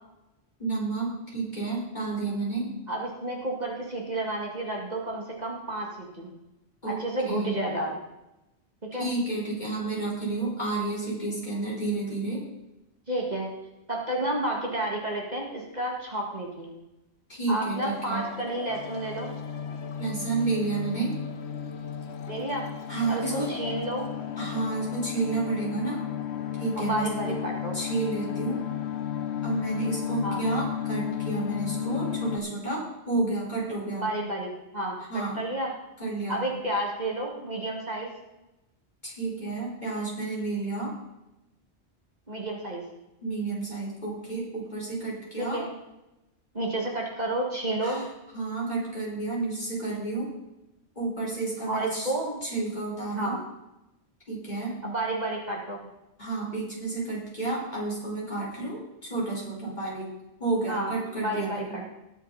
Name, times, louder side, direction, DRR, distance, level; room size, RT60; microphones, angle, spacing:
voice 1, 0.6-2.7 6.8-7.0 7.3-7.6 8.9-12.4 17.3-18.3 20.0-21.1 22.9-23.5 24.4-26.0 26.6-27.3 27.7-28.6 29.4-34.1 35.1-35.4 36.0-36.5 39.0-40.9 43.2-45.6 47.8-48.1 48.3-50.3 51.0-52.1 52.4-53.4 54.3-54.7 56.2-60.1 60.4-61.8, right 3 dB, 40° left, -5 dB, 5.3 m, -31 dB
voice 2, 2.9-6.3 6.9-8.0 8.9-9.1 13.1-13.5 13.9-16.7 17.5-19.3 22.3-22.7 23.1-24.1 26.8-27.7 30.2-30.4 33.9-35.7 36.3-38.1 42.3-42.8 45.4-45.7 46.5-48.0 51.7-52.4 53.2-53.4 54.8-55.8 60.7-61.0 61.2-61.8, right 1 dB, 40° right, -1 dB, 2.4 m, -31 dB
sound 1, 17.8-32.4, left 9 dB, 70° left, 1.3 m, -34 dB
20.5 x 7.3 x 4.3 m, 0.95 s
omnidirectional pair, 1.1 m